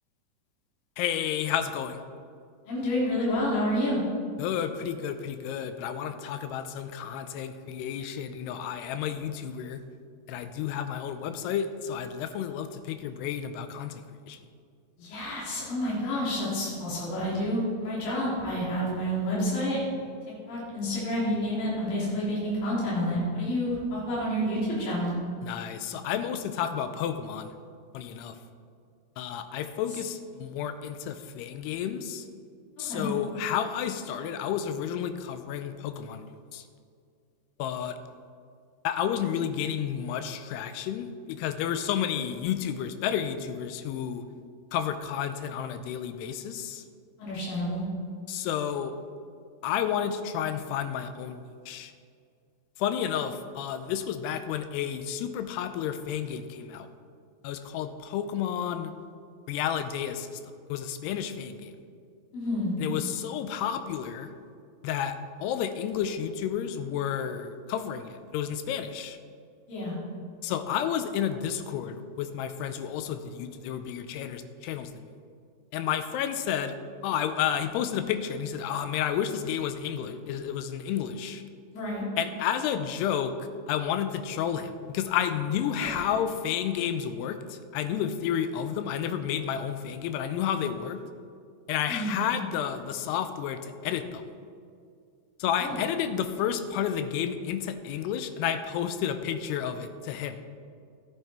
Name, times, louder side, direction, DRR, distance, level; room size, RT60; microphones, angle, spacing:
voice 1, 1.0-2.0 4.4-9.8 10.3-14.4 25.4-27.5 27.9-28.4 29.2-32.3 32.8-36.6 37.6-38.0 38.8-44.2 44.7-46.8 48.3-48.9 49.6-51.9 52.8-56.9 57.4-58.9 59.5-60.4 60.7-61.7 62.8-64.3 64.8-69.2 70.4-75.0 75.7-76.8 77.0-81.4 82.2-91.0 91.7-94.2 95.4-100.4, left 9 dB, 85° left, 10 dB, 2.7 m, -31 dB
voice 2, 2.7-4.0 15.0-19.8 20.5-25.1 32.9-33.1 47.2-47.8 62.3-62.7 69.7-69.9 81.7-82.0 85.8-85.9 91.9-92.2 95.6-95.8, equal, 60° left, -7 dB, 4.7 m, -29 dB
13.5 x 9.1 x 4.4 m, 2.3 s
omnidirectional pair, 4.8 m